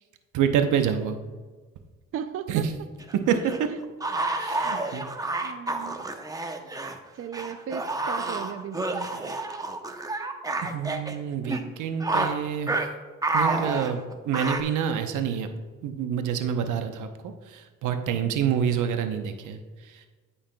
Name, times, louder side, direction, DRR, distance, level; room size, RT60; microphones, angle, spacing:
voice 1, 0.3-1.2 2.5-2.7 3.1-3.7 4.4-5.1 10.6-12.9 13.3-15.5 15.8-20.1, right 8 dB, 80° right, 7 dB, 0.8 m, -27 dB
voice 2, 2.1-2.6 4.6-5.0 5.4-6.1 7.1-9.3, right 8 dB, 50° right, 9 dB, 0.5 m, -37 dB
sound 1, 3.0-6.9 7.3-11.1 11.5-11.6 12.0-12.4 12.7-12.9 13.2-14.6, right 2 dB, 10° right, 0.7 m, -29 dB
14.0 x 5.6 x 2.2 m, 1.4 s
cardioid pair, 90°, 30 cm